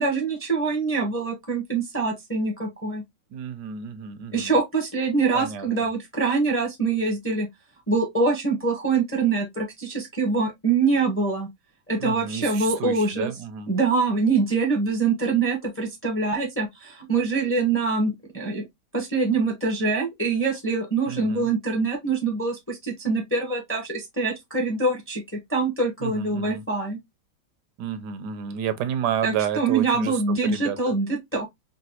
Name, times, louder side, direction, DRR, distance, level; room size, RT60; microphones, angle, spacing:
voice 1, 0.0-3.0 4.3-7.5 7.9-11.5 11.9-13.3 13.7-18.6 18.9-27.0 29.2-31.5, right 4 dB, 10° left, 0.6 m, -24 dB
voice 2, 3.3-4.5 5.3-5.7 12.0-13.7 21.1-21.5 26.0-26.6 27.8-30.8, right 8 dB, 80° right, 1.2 m, -31 dB
3.9 x 2.1 x 2.7 m
omnidirectional pair, 1.8 m